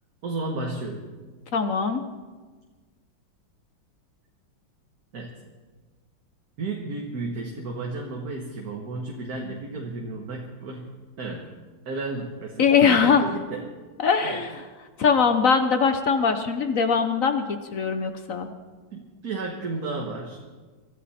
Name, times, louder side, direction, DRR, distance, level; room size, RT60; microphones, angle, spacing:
voice 1, 0.2-1.1 5.1-5.3 6.6-10.9 11.2-11.5 11.8-13.7 14.2-14.4 18.9-20.4, right 3 dB, 50° right, 0 dB, 1.7 m, -33 dB
voice 2, 1.5-2.0 12.6-13.2 14.0-14.5 15.0-18.5, left 6 dB, 55° left, 8 dB, 0.9 m, -21 dB
24.0 x 13.5 x 4.3 m, 1.4 s
omnidirectional pair, 2.3 m